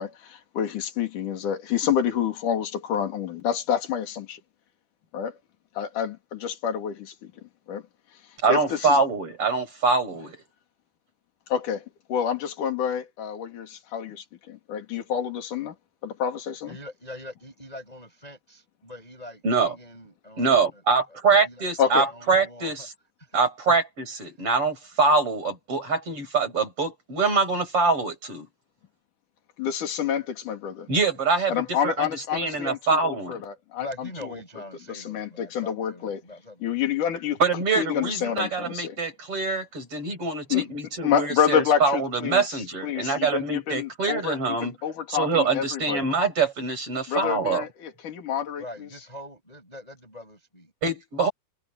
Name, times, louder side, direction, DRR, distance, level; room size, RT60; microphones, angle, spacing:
voice 1, 0.0-4.4 5.1-5.4 5.8-7.1 7.7-7.8 8.5-9.0 11.5-11.8 12.1-15.7 16.0-16.8 21.8-22.1 29.6-30.9 31.5-34.4 34.9-36.2 36.6-37.4 37.8-39.0 40.5-40.7 41.0-46.1 47.1-49.0, left 8 dB, 70° left, 4.2 m, -28 dB
voice 2, 8.4-10.3 19.4-19.8 20.4-22.9 23.3-28.5 30.9-32.1 32.3-33.4 37.4-44.7 45.1-47.6 50.8-51.3, right 4 dB, 40° right, 6.3 m, -24 dB
voice 3, 16.7-20.7 21.1-22.7 33.7-36.8 48.6-50.7, left 1 dB, 10° left, 6.1 m, -43 dB
omnidirectional pair, 3.8 m